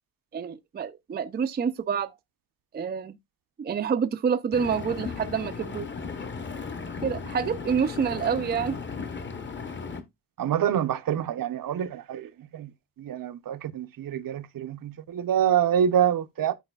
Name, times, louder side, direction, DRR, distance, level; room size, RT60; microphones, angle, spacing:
voice 1, 0.3-2.1 2.7-3.2 3.6-5.9 7.0-8.8, right 7 dB, 25° right, 0.4 m, -27 dB
Engine, 4.5-10.0, left 5 dB, 30° left, 0.9 m, -36 dB
voice 2, 10.4-12.7 13.0-16.5, right 9 dB, 60° right, 0.7 m, -26 dB
13.0 x 4.8 x 2.3 m
wide cardioid pair, 160°, 38 cm